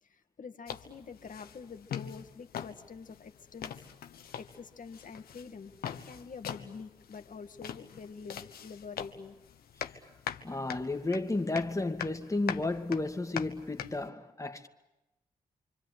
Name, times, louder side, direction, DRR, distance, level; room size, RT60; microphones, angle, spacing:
voice 1, 0.0-3.8 4.4-5.7 6.0-9.4, left 5 dB, 60° left, 1.9 m, -46 dB
sound 1, 0.7-14.1, left 8 dB, 80° left, 1.3 m, -43 dB
voice 2, 10.4-14.7, left 2 dB, 20° left, 2.4 m, -32 dB
26.5 x 25.5 x 8.2 m
supercardioid pair, 45°, 16 cm